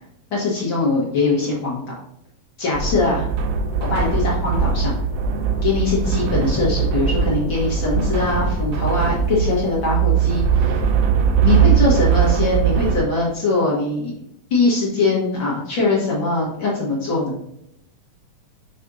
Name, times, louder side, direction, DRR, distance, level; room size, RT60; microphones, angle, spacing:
voice 1, 0.3-1.8 2.6-3.2 3.9-5.0 5.6-10.8 11.4-14.1 14.5-17.4, left 3 dB, 50° left, -5 dB, 1.5 m, -21 dB
sound 1, 2.7-13.0, right 7 dB, 80° right, 2.1 m, -20 dB
6.1 x 5.8 x 2.6 m, 0.76 s
omnidirectional pair, 3.9 m